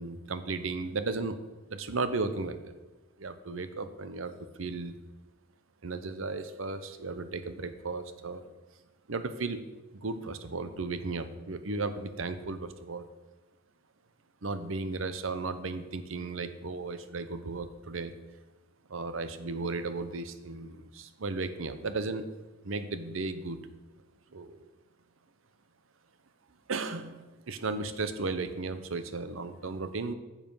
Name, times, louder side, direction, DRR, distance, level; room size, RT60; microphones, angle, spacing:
voice 1, 0.0-1.4 1.7-2.7 3.2-4.3 4.6-4.9 5.8-8.4 9.1-9.6 9.9-13.0 14.4-18.1 18.9-22.2 22.6-23.6 24.3-24.7 26.7-30.1, right 3 dB, 75° right, 11 dB, 0.8 m, -35 dB
10.0 x 7.4 x 5.6 m, 1.2 s
head